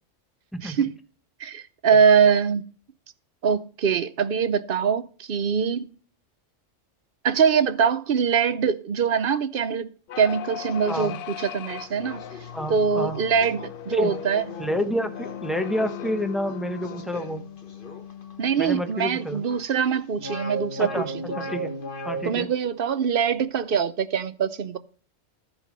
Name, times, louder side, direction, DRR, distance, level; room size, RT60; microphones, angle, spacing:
voice 1, 0.6-0.9 1.4-2.6 3.4-5.9 7.2-9.9 10.2-12.2 12.7-14.4 18.4-21.0 22.2-24.8, right 6 dB, 50° right, 0.8 m, -23 dB
sound 1, 10.1-18.8, left 10 dB, 60° left, 0.6 m, -38 dB
sound 2, 10.7-11.1 11.8-19.6 19.9-22.3, equal, 45° left, 1.6 m, -37 dB
voice 2, 10.9-11.2 12.5-13.2 13.9-14.1 14.6-17.4 18.6-19.4 20.8-21.1 21.5-21.7 22.0-22.5, equal, ahead, 0.9 m, -29 dB
14.0 x 5.0 x 5.1 m
omnidirectional pair, 1.3 m